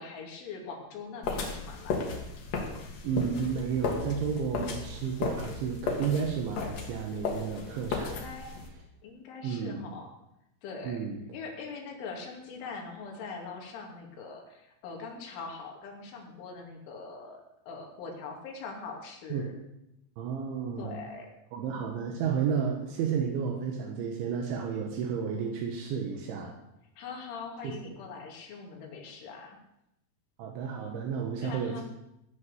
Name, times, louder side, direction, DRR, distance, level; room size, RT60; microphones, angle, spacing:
voice 1, 0.0-2.1 8.1-8.5 9.0-10.1 10.6-11.0 11.3-19.5 20.8-21.3 27.0-29.6 31.4-31.8, left 4 dB, 85° left, 1 dB, 5.0 m, -42 dB
sound 1, 1.2-8.7, left 4 dB, 55° left, 3.1 m, -35 dB
voice 2, 3.0-8.2 9.4-9.8 10.8-11.2 19.3-19.5 20.2-21.0 21.5-26.5 27.6-27.8 30.4-31.8, right 6 dB, 80° right, 1 dB, 3.8 m, -32 dB
16.5 x 8.7 x 7.0 m, 0.86 s
omnidirectional pair, 5.4 m